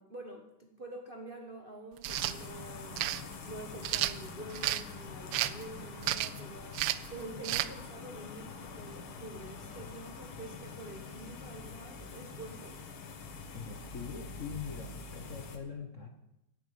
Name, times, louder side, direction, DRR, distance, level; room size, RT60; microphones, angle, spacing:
voice 1, 0.0-3.1 3.5-12.8, right 2 dB, 35° right, 3 dB, 1.0 m, -47 dB
sound 1, 2.0-2.4 3.0-3.2 3.8-4.8 5.3-5.6 6.0-6.4 6.7-7.1 7.4-7.7, right 14 dB, 75° right, 1.3 m, -31 dB
sound 2, 2.1-15.6, left 4 dB, 75° left, 2.1 m, -45 dB
voice 2, 13.5-16.1, left 5 dB, 45° left, 4 dB, 1.2 m, -42 dB
11.5 x 7.5 x 8.6 m, 0.88 s
omnidirectional pair, 2.3 m